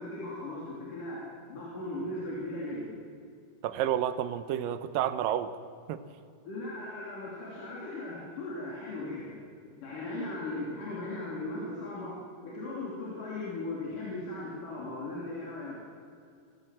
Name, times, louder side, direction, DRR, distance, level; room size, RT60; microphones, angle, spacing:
voice 1, 0.0-3.0 6.5-9.4 9.8-15.8, left 2 dB, 70° left, -4 dB, 4.5 m, -38 dB
voice 2, 3.6-5.5 5.9-6.0, right 11 dB, 85° right, 12 dB, 2.6 m, -30 dB
25.0 x 16.0 x 7.5 m, 2.3 s
omnidirectional pair, 3.9 m